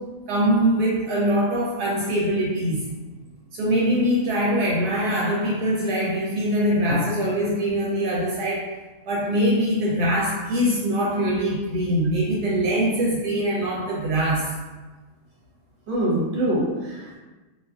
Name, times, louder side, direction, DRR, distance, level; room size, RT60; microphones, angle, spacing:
voice 1, 0.0-2.8 3.5-8.8 9.1-14.7, equal, 75° right, -5 dB, 1.1 m, -23 dB
voice 2, 15.9-17.2, right 1 dB, 50° right, -6 dB, 1.1 m, -24 dB
2.7 x 2.4 x 2.3 m, 1.2 s
omnidirectional pair, 1.7 m